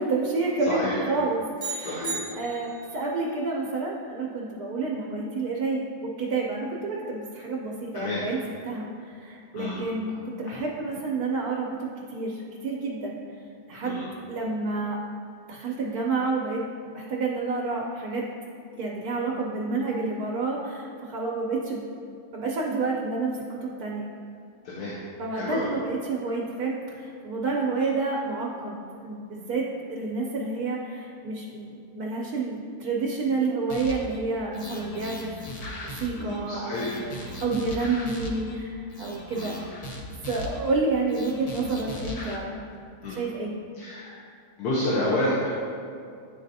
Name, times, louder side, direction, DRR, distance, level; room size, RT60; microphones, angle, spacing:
voice 1, 0.0-2.0 2.3-8.4 8.6-13.2 13.7-15.0 15.5-18.2 18.8-21.8 22.3-24.1 25.2-35.4 35.7-39.6 40.3-42.7 43.1-43.5, right 3 dB, 80° right, -2 dB, 1.2 m, -29 dB
voice 2, 0.7-1.0 1.8-2.2 7.9-8.2 9.5-9.8 10.5-10.6 13.8-14.1 24.6-25.0 25.3-25.7 36.1-37.0 39.3-39.7 43.0-43.2 43.7-44.2 44.6-45.5, left 1 dB, 80° left, -5 dB, 1.4 m, -29 dB
sound 1, 1.6-3.0, right 4 dB, 30° right, 1.1 m, -35 dB
sound 2, 33.7-34.2 34.5-36.4 36.7-38.6 38.9-40.7 41.1-42.4, left 1 dB, 50° left, 0.4 m, -38 dB
10.0 x 4.0 x 2.7 m, 2.4 s
omnidirectional pair, 1.6 m